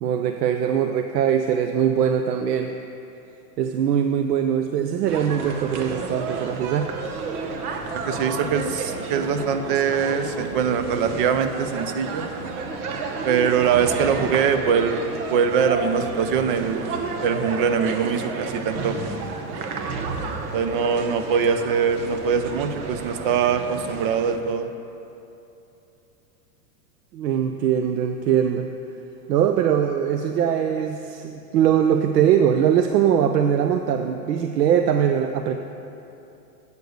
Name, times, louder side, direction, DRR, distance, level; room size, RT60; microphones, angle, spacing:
voice 1, 0.0-2.7 3.6-6.9 27.1-28.7 29.3-35.6, right 9 dB, 85° right, 6 dB, 0.6 m, -21 dB
sound 1, 5.1-24.4, right 4 dB, 65° right, 1.1 m, -31 dB
voice 2, 8.1-12.3 13.2-15.0 15.3-19.0 20.5-24.7, right 6 dB, 35° right, 9 dB, 0.5 m, -23 dB
8.2 x 6.8 x 6.4 m, 2.8 s
supercardioid pair, 145°, 47 cm